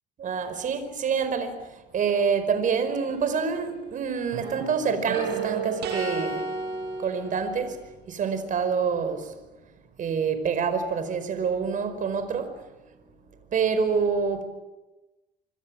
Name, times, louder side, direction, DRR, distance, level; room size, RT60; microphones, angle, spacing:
voice 1, 0.2-6.5 7.0-7.8 8.1-9.3 10.0-12.6 13.5-14.4, right 6 dB, 50° right, 4.9 m, -27 dB
sound 1, 2.9-3.9 4.3-7.8, right 5 dB, 80° right, 7.1 m, -33 dB
25.5 x 25.0 x 8.8 m
cardioid pair, 110°, 17 cm